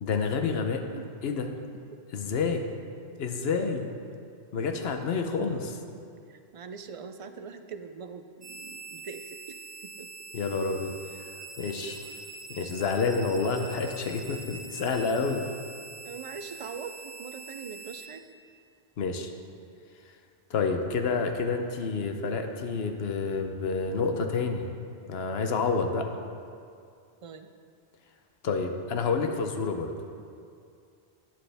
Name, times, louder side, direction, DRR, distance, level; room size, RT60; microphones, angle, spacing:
voice 1, 0.0-0.8 1.2-1.5 2.1-2.6 3.2-3.9 4.5-5.8 10.3-10.9 11.2-11.3 11.6-12.0 12.5-15.4 19.0-19.3 20.5-24.7 25.1-26.1 28.4-29.9, left 4 dB, 70° left, 5 dB, 1.0 m, -29 dB
voice 2, 5.2-5.6 6.3-9.6 9.8-10.1 16.0-18.2 27.2-27.5, right 6 dB, 50° right, 8 dB, 0.4 m, -42 dB
sound 1, 8.4-18.1, right 4 dB, 70° right, 1.5 m, -44 dB
11.5 x 9.2 x 3.4 m, 2.4 s
omnidirectional pair, 1.1 m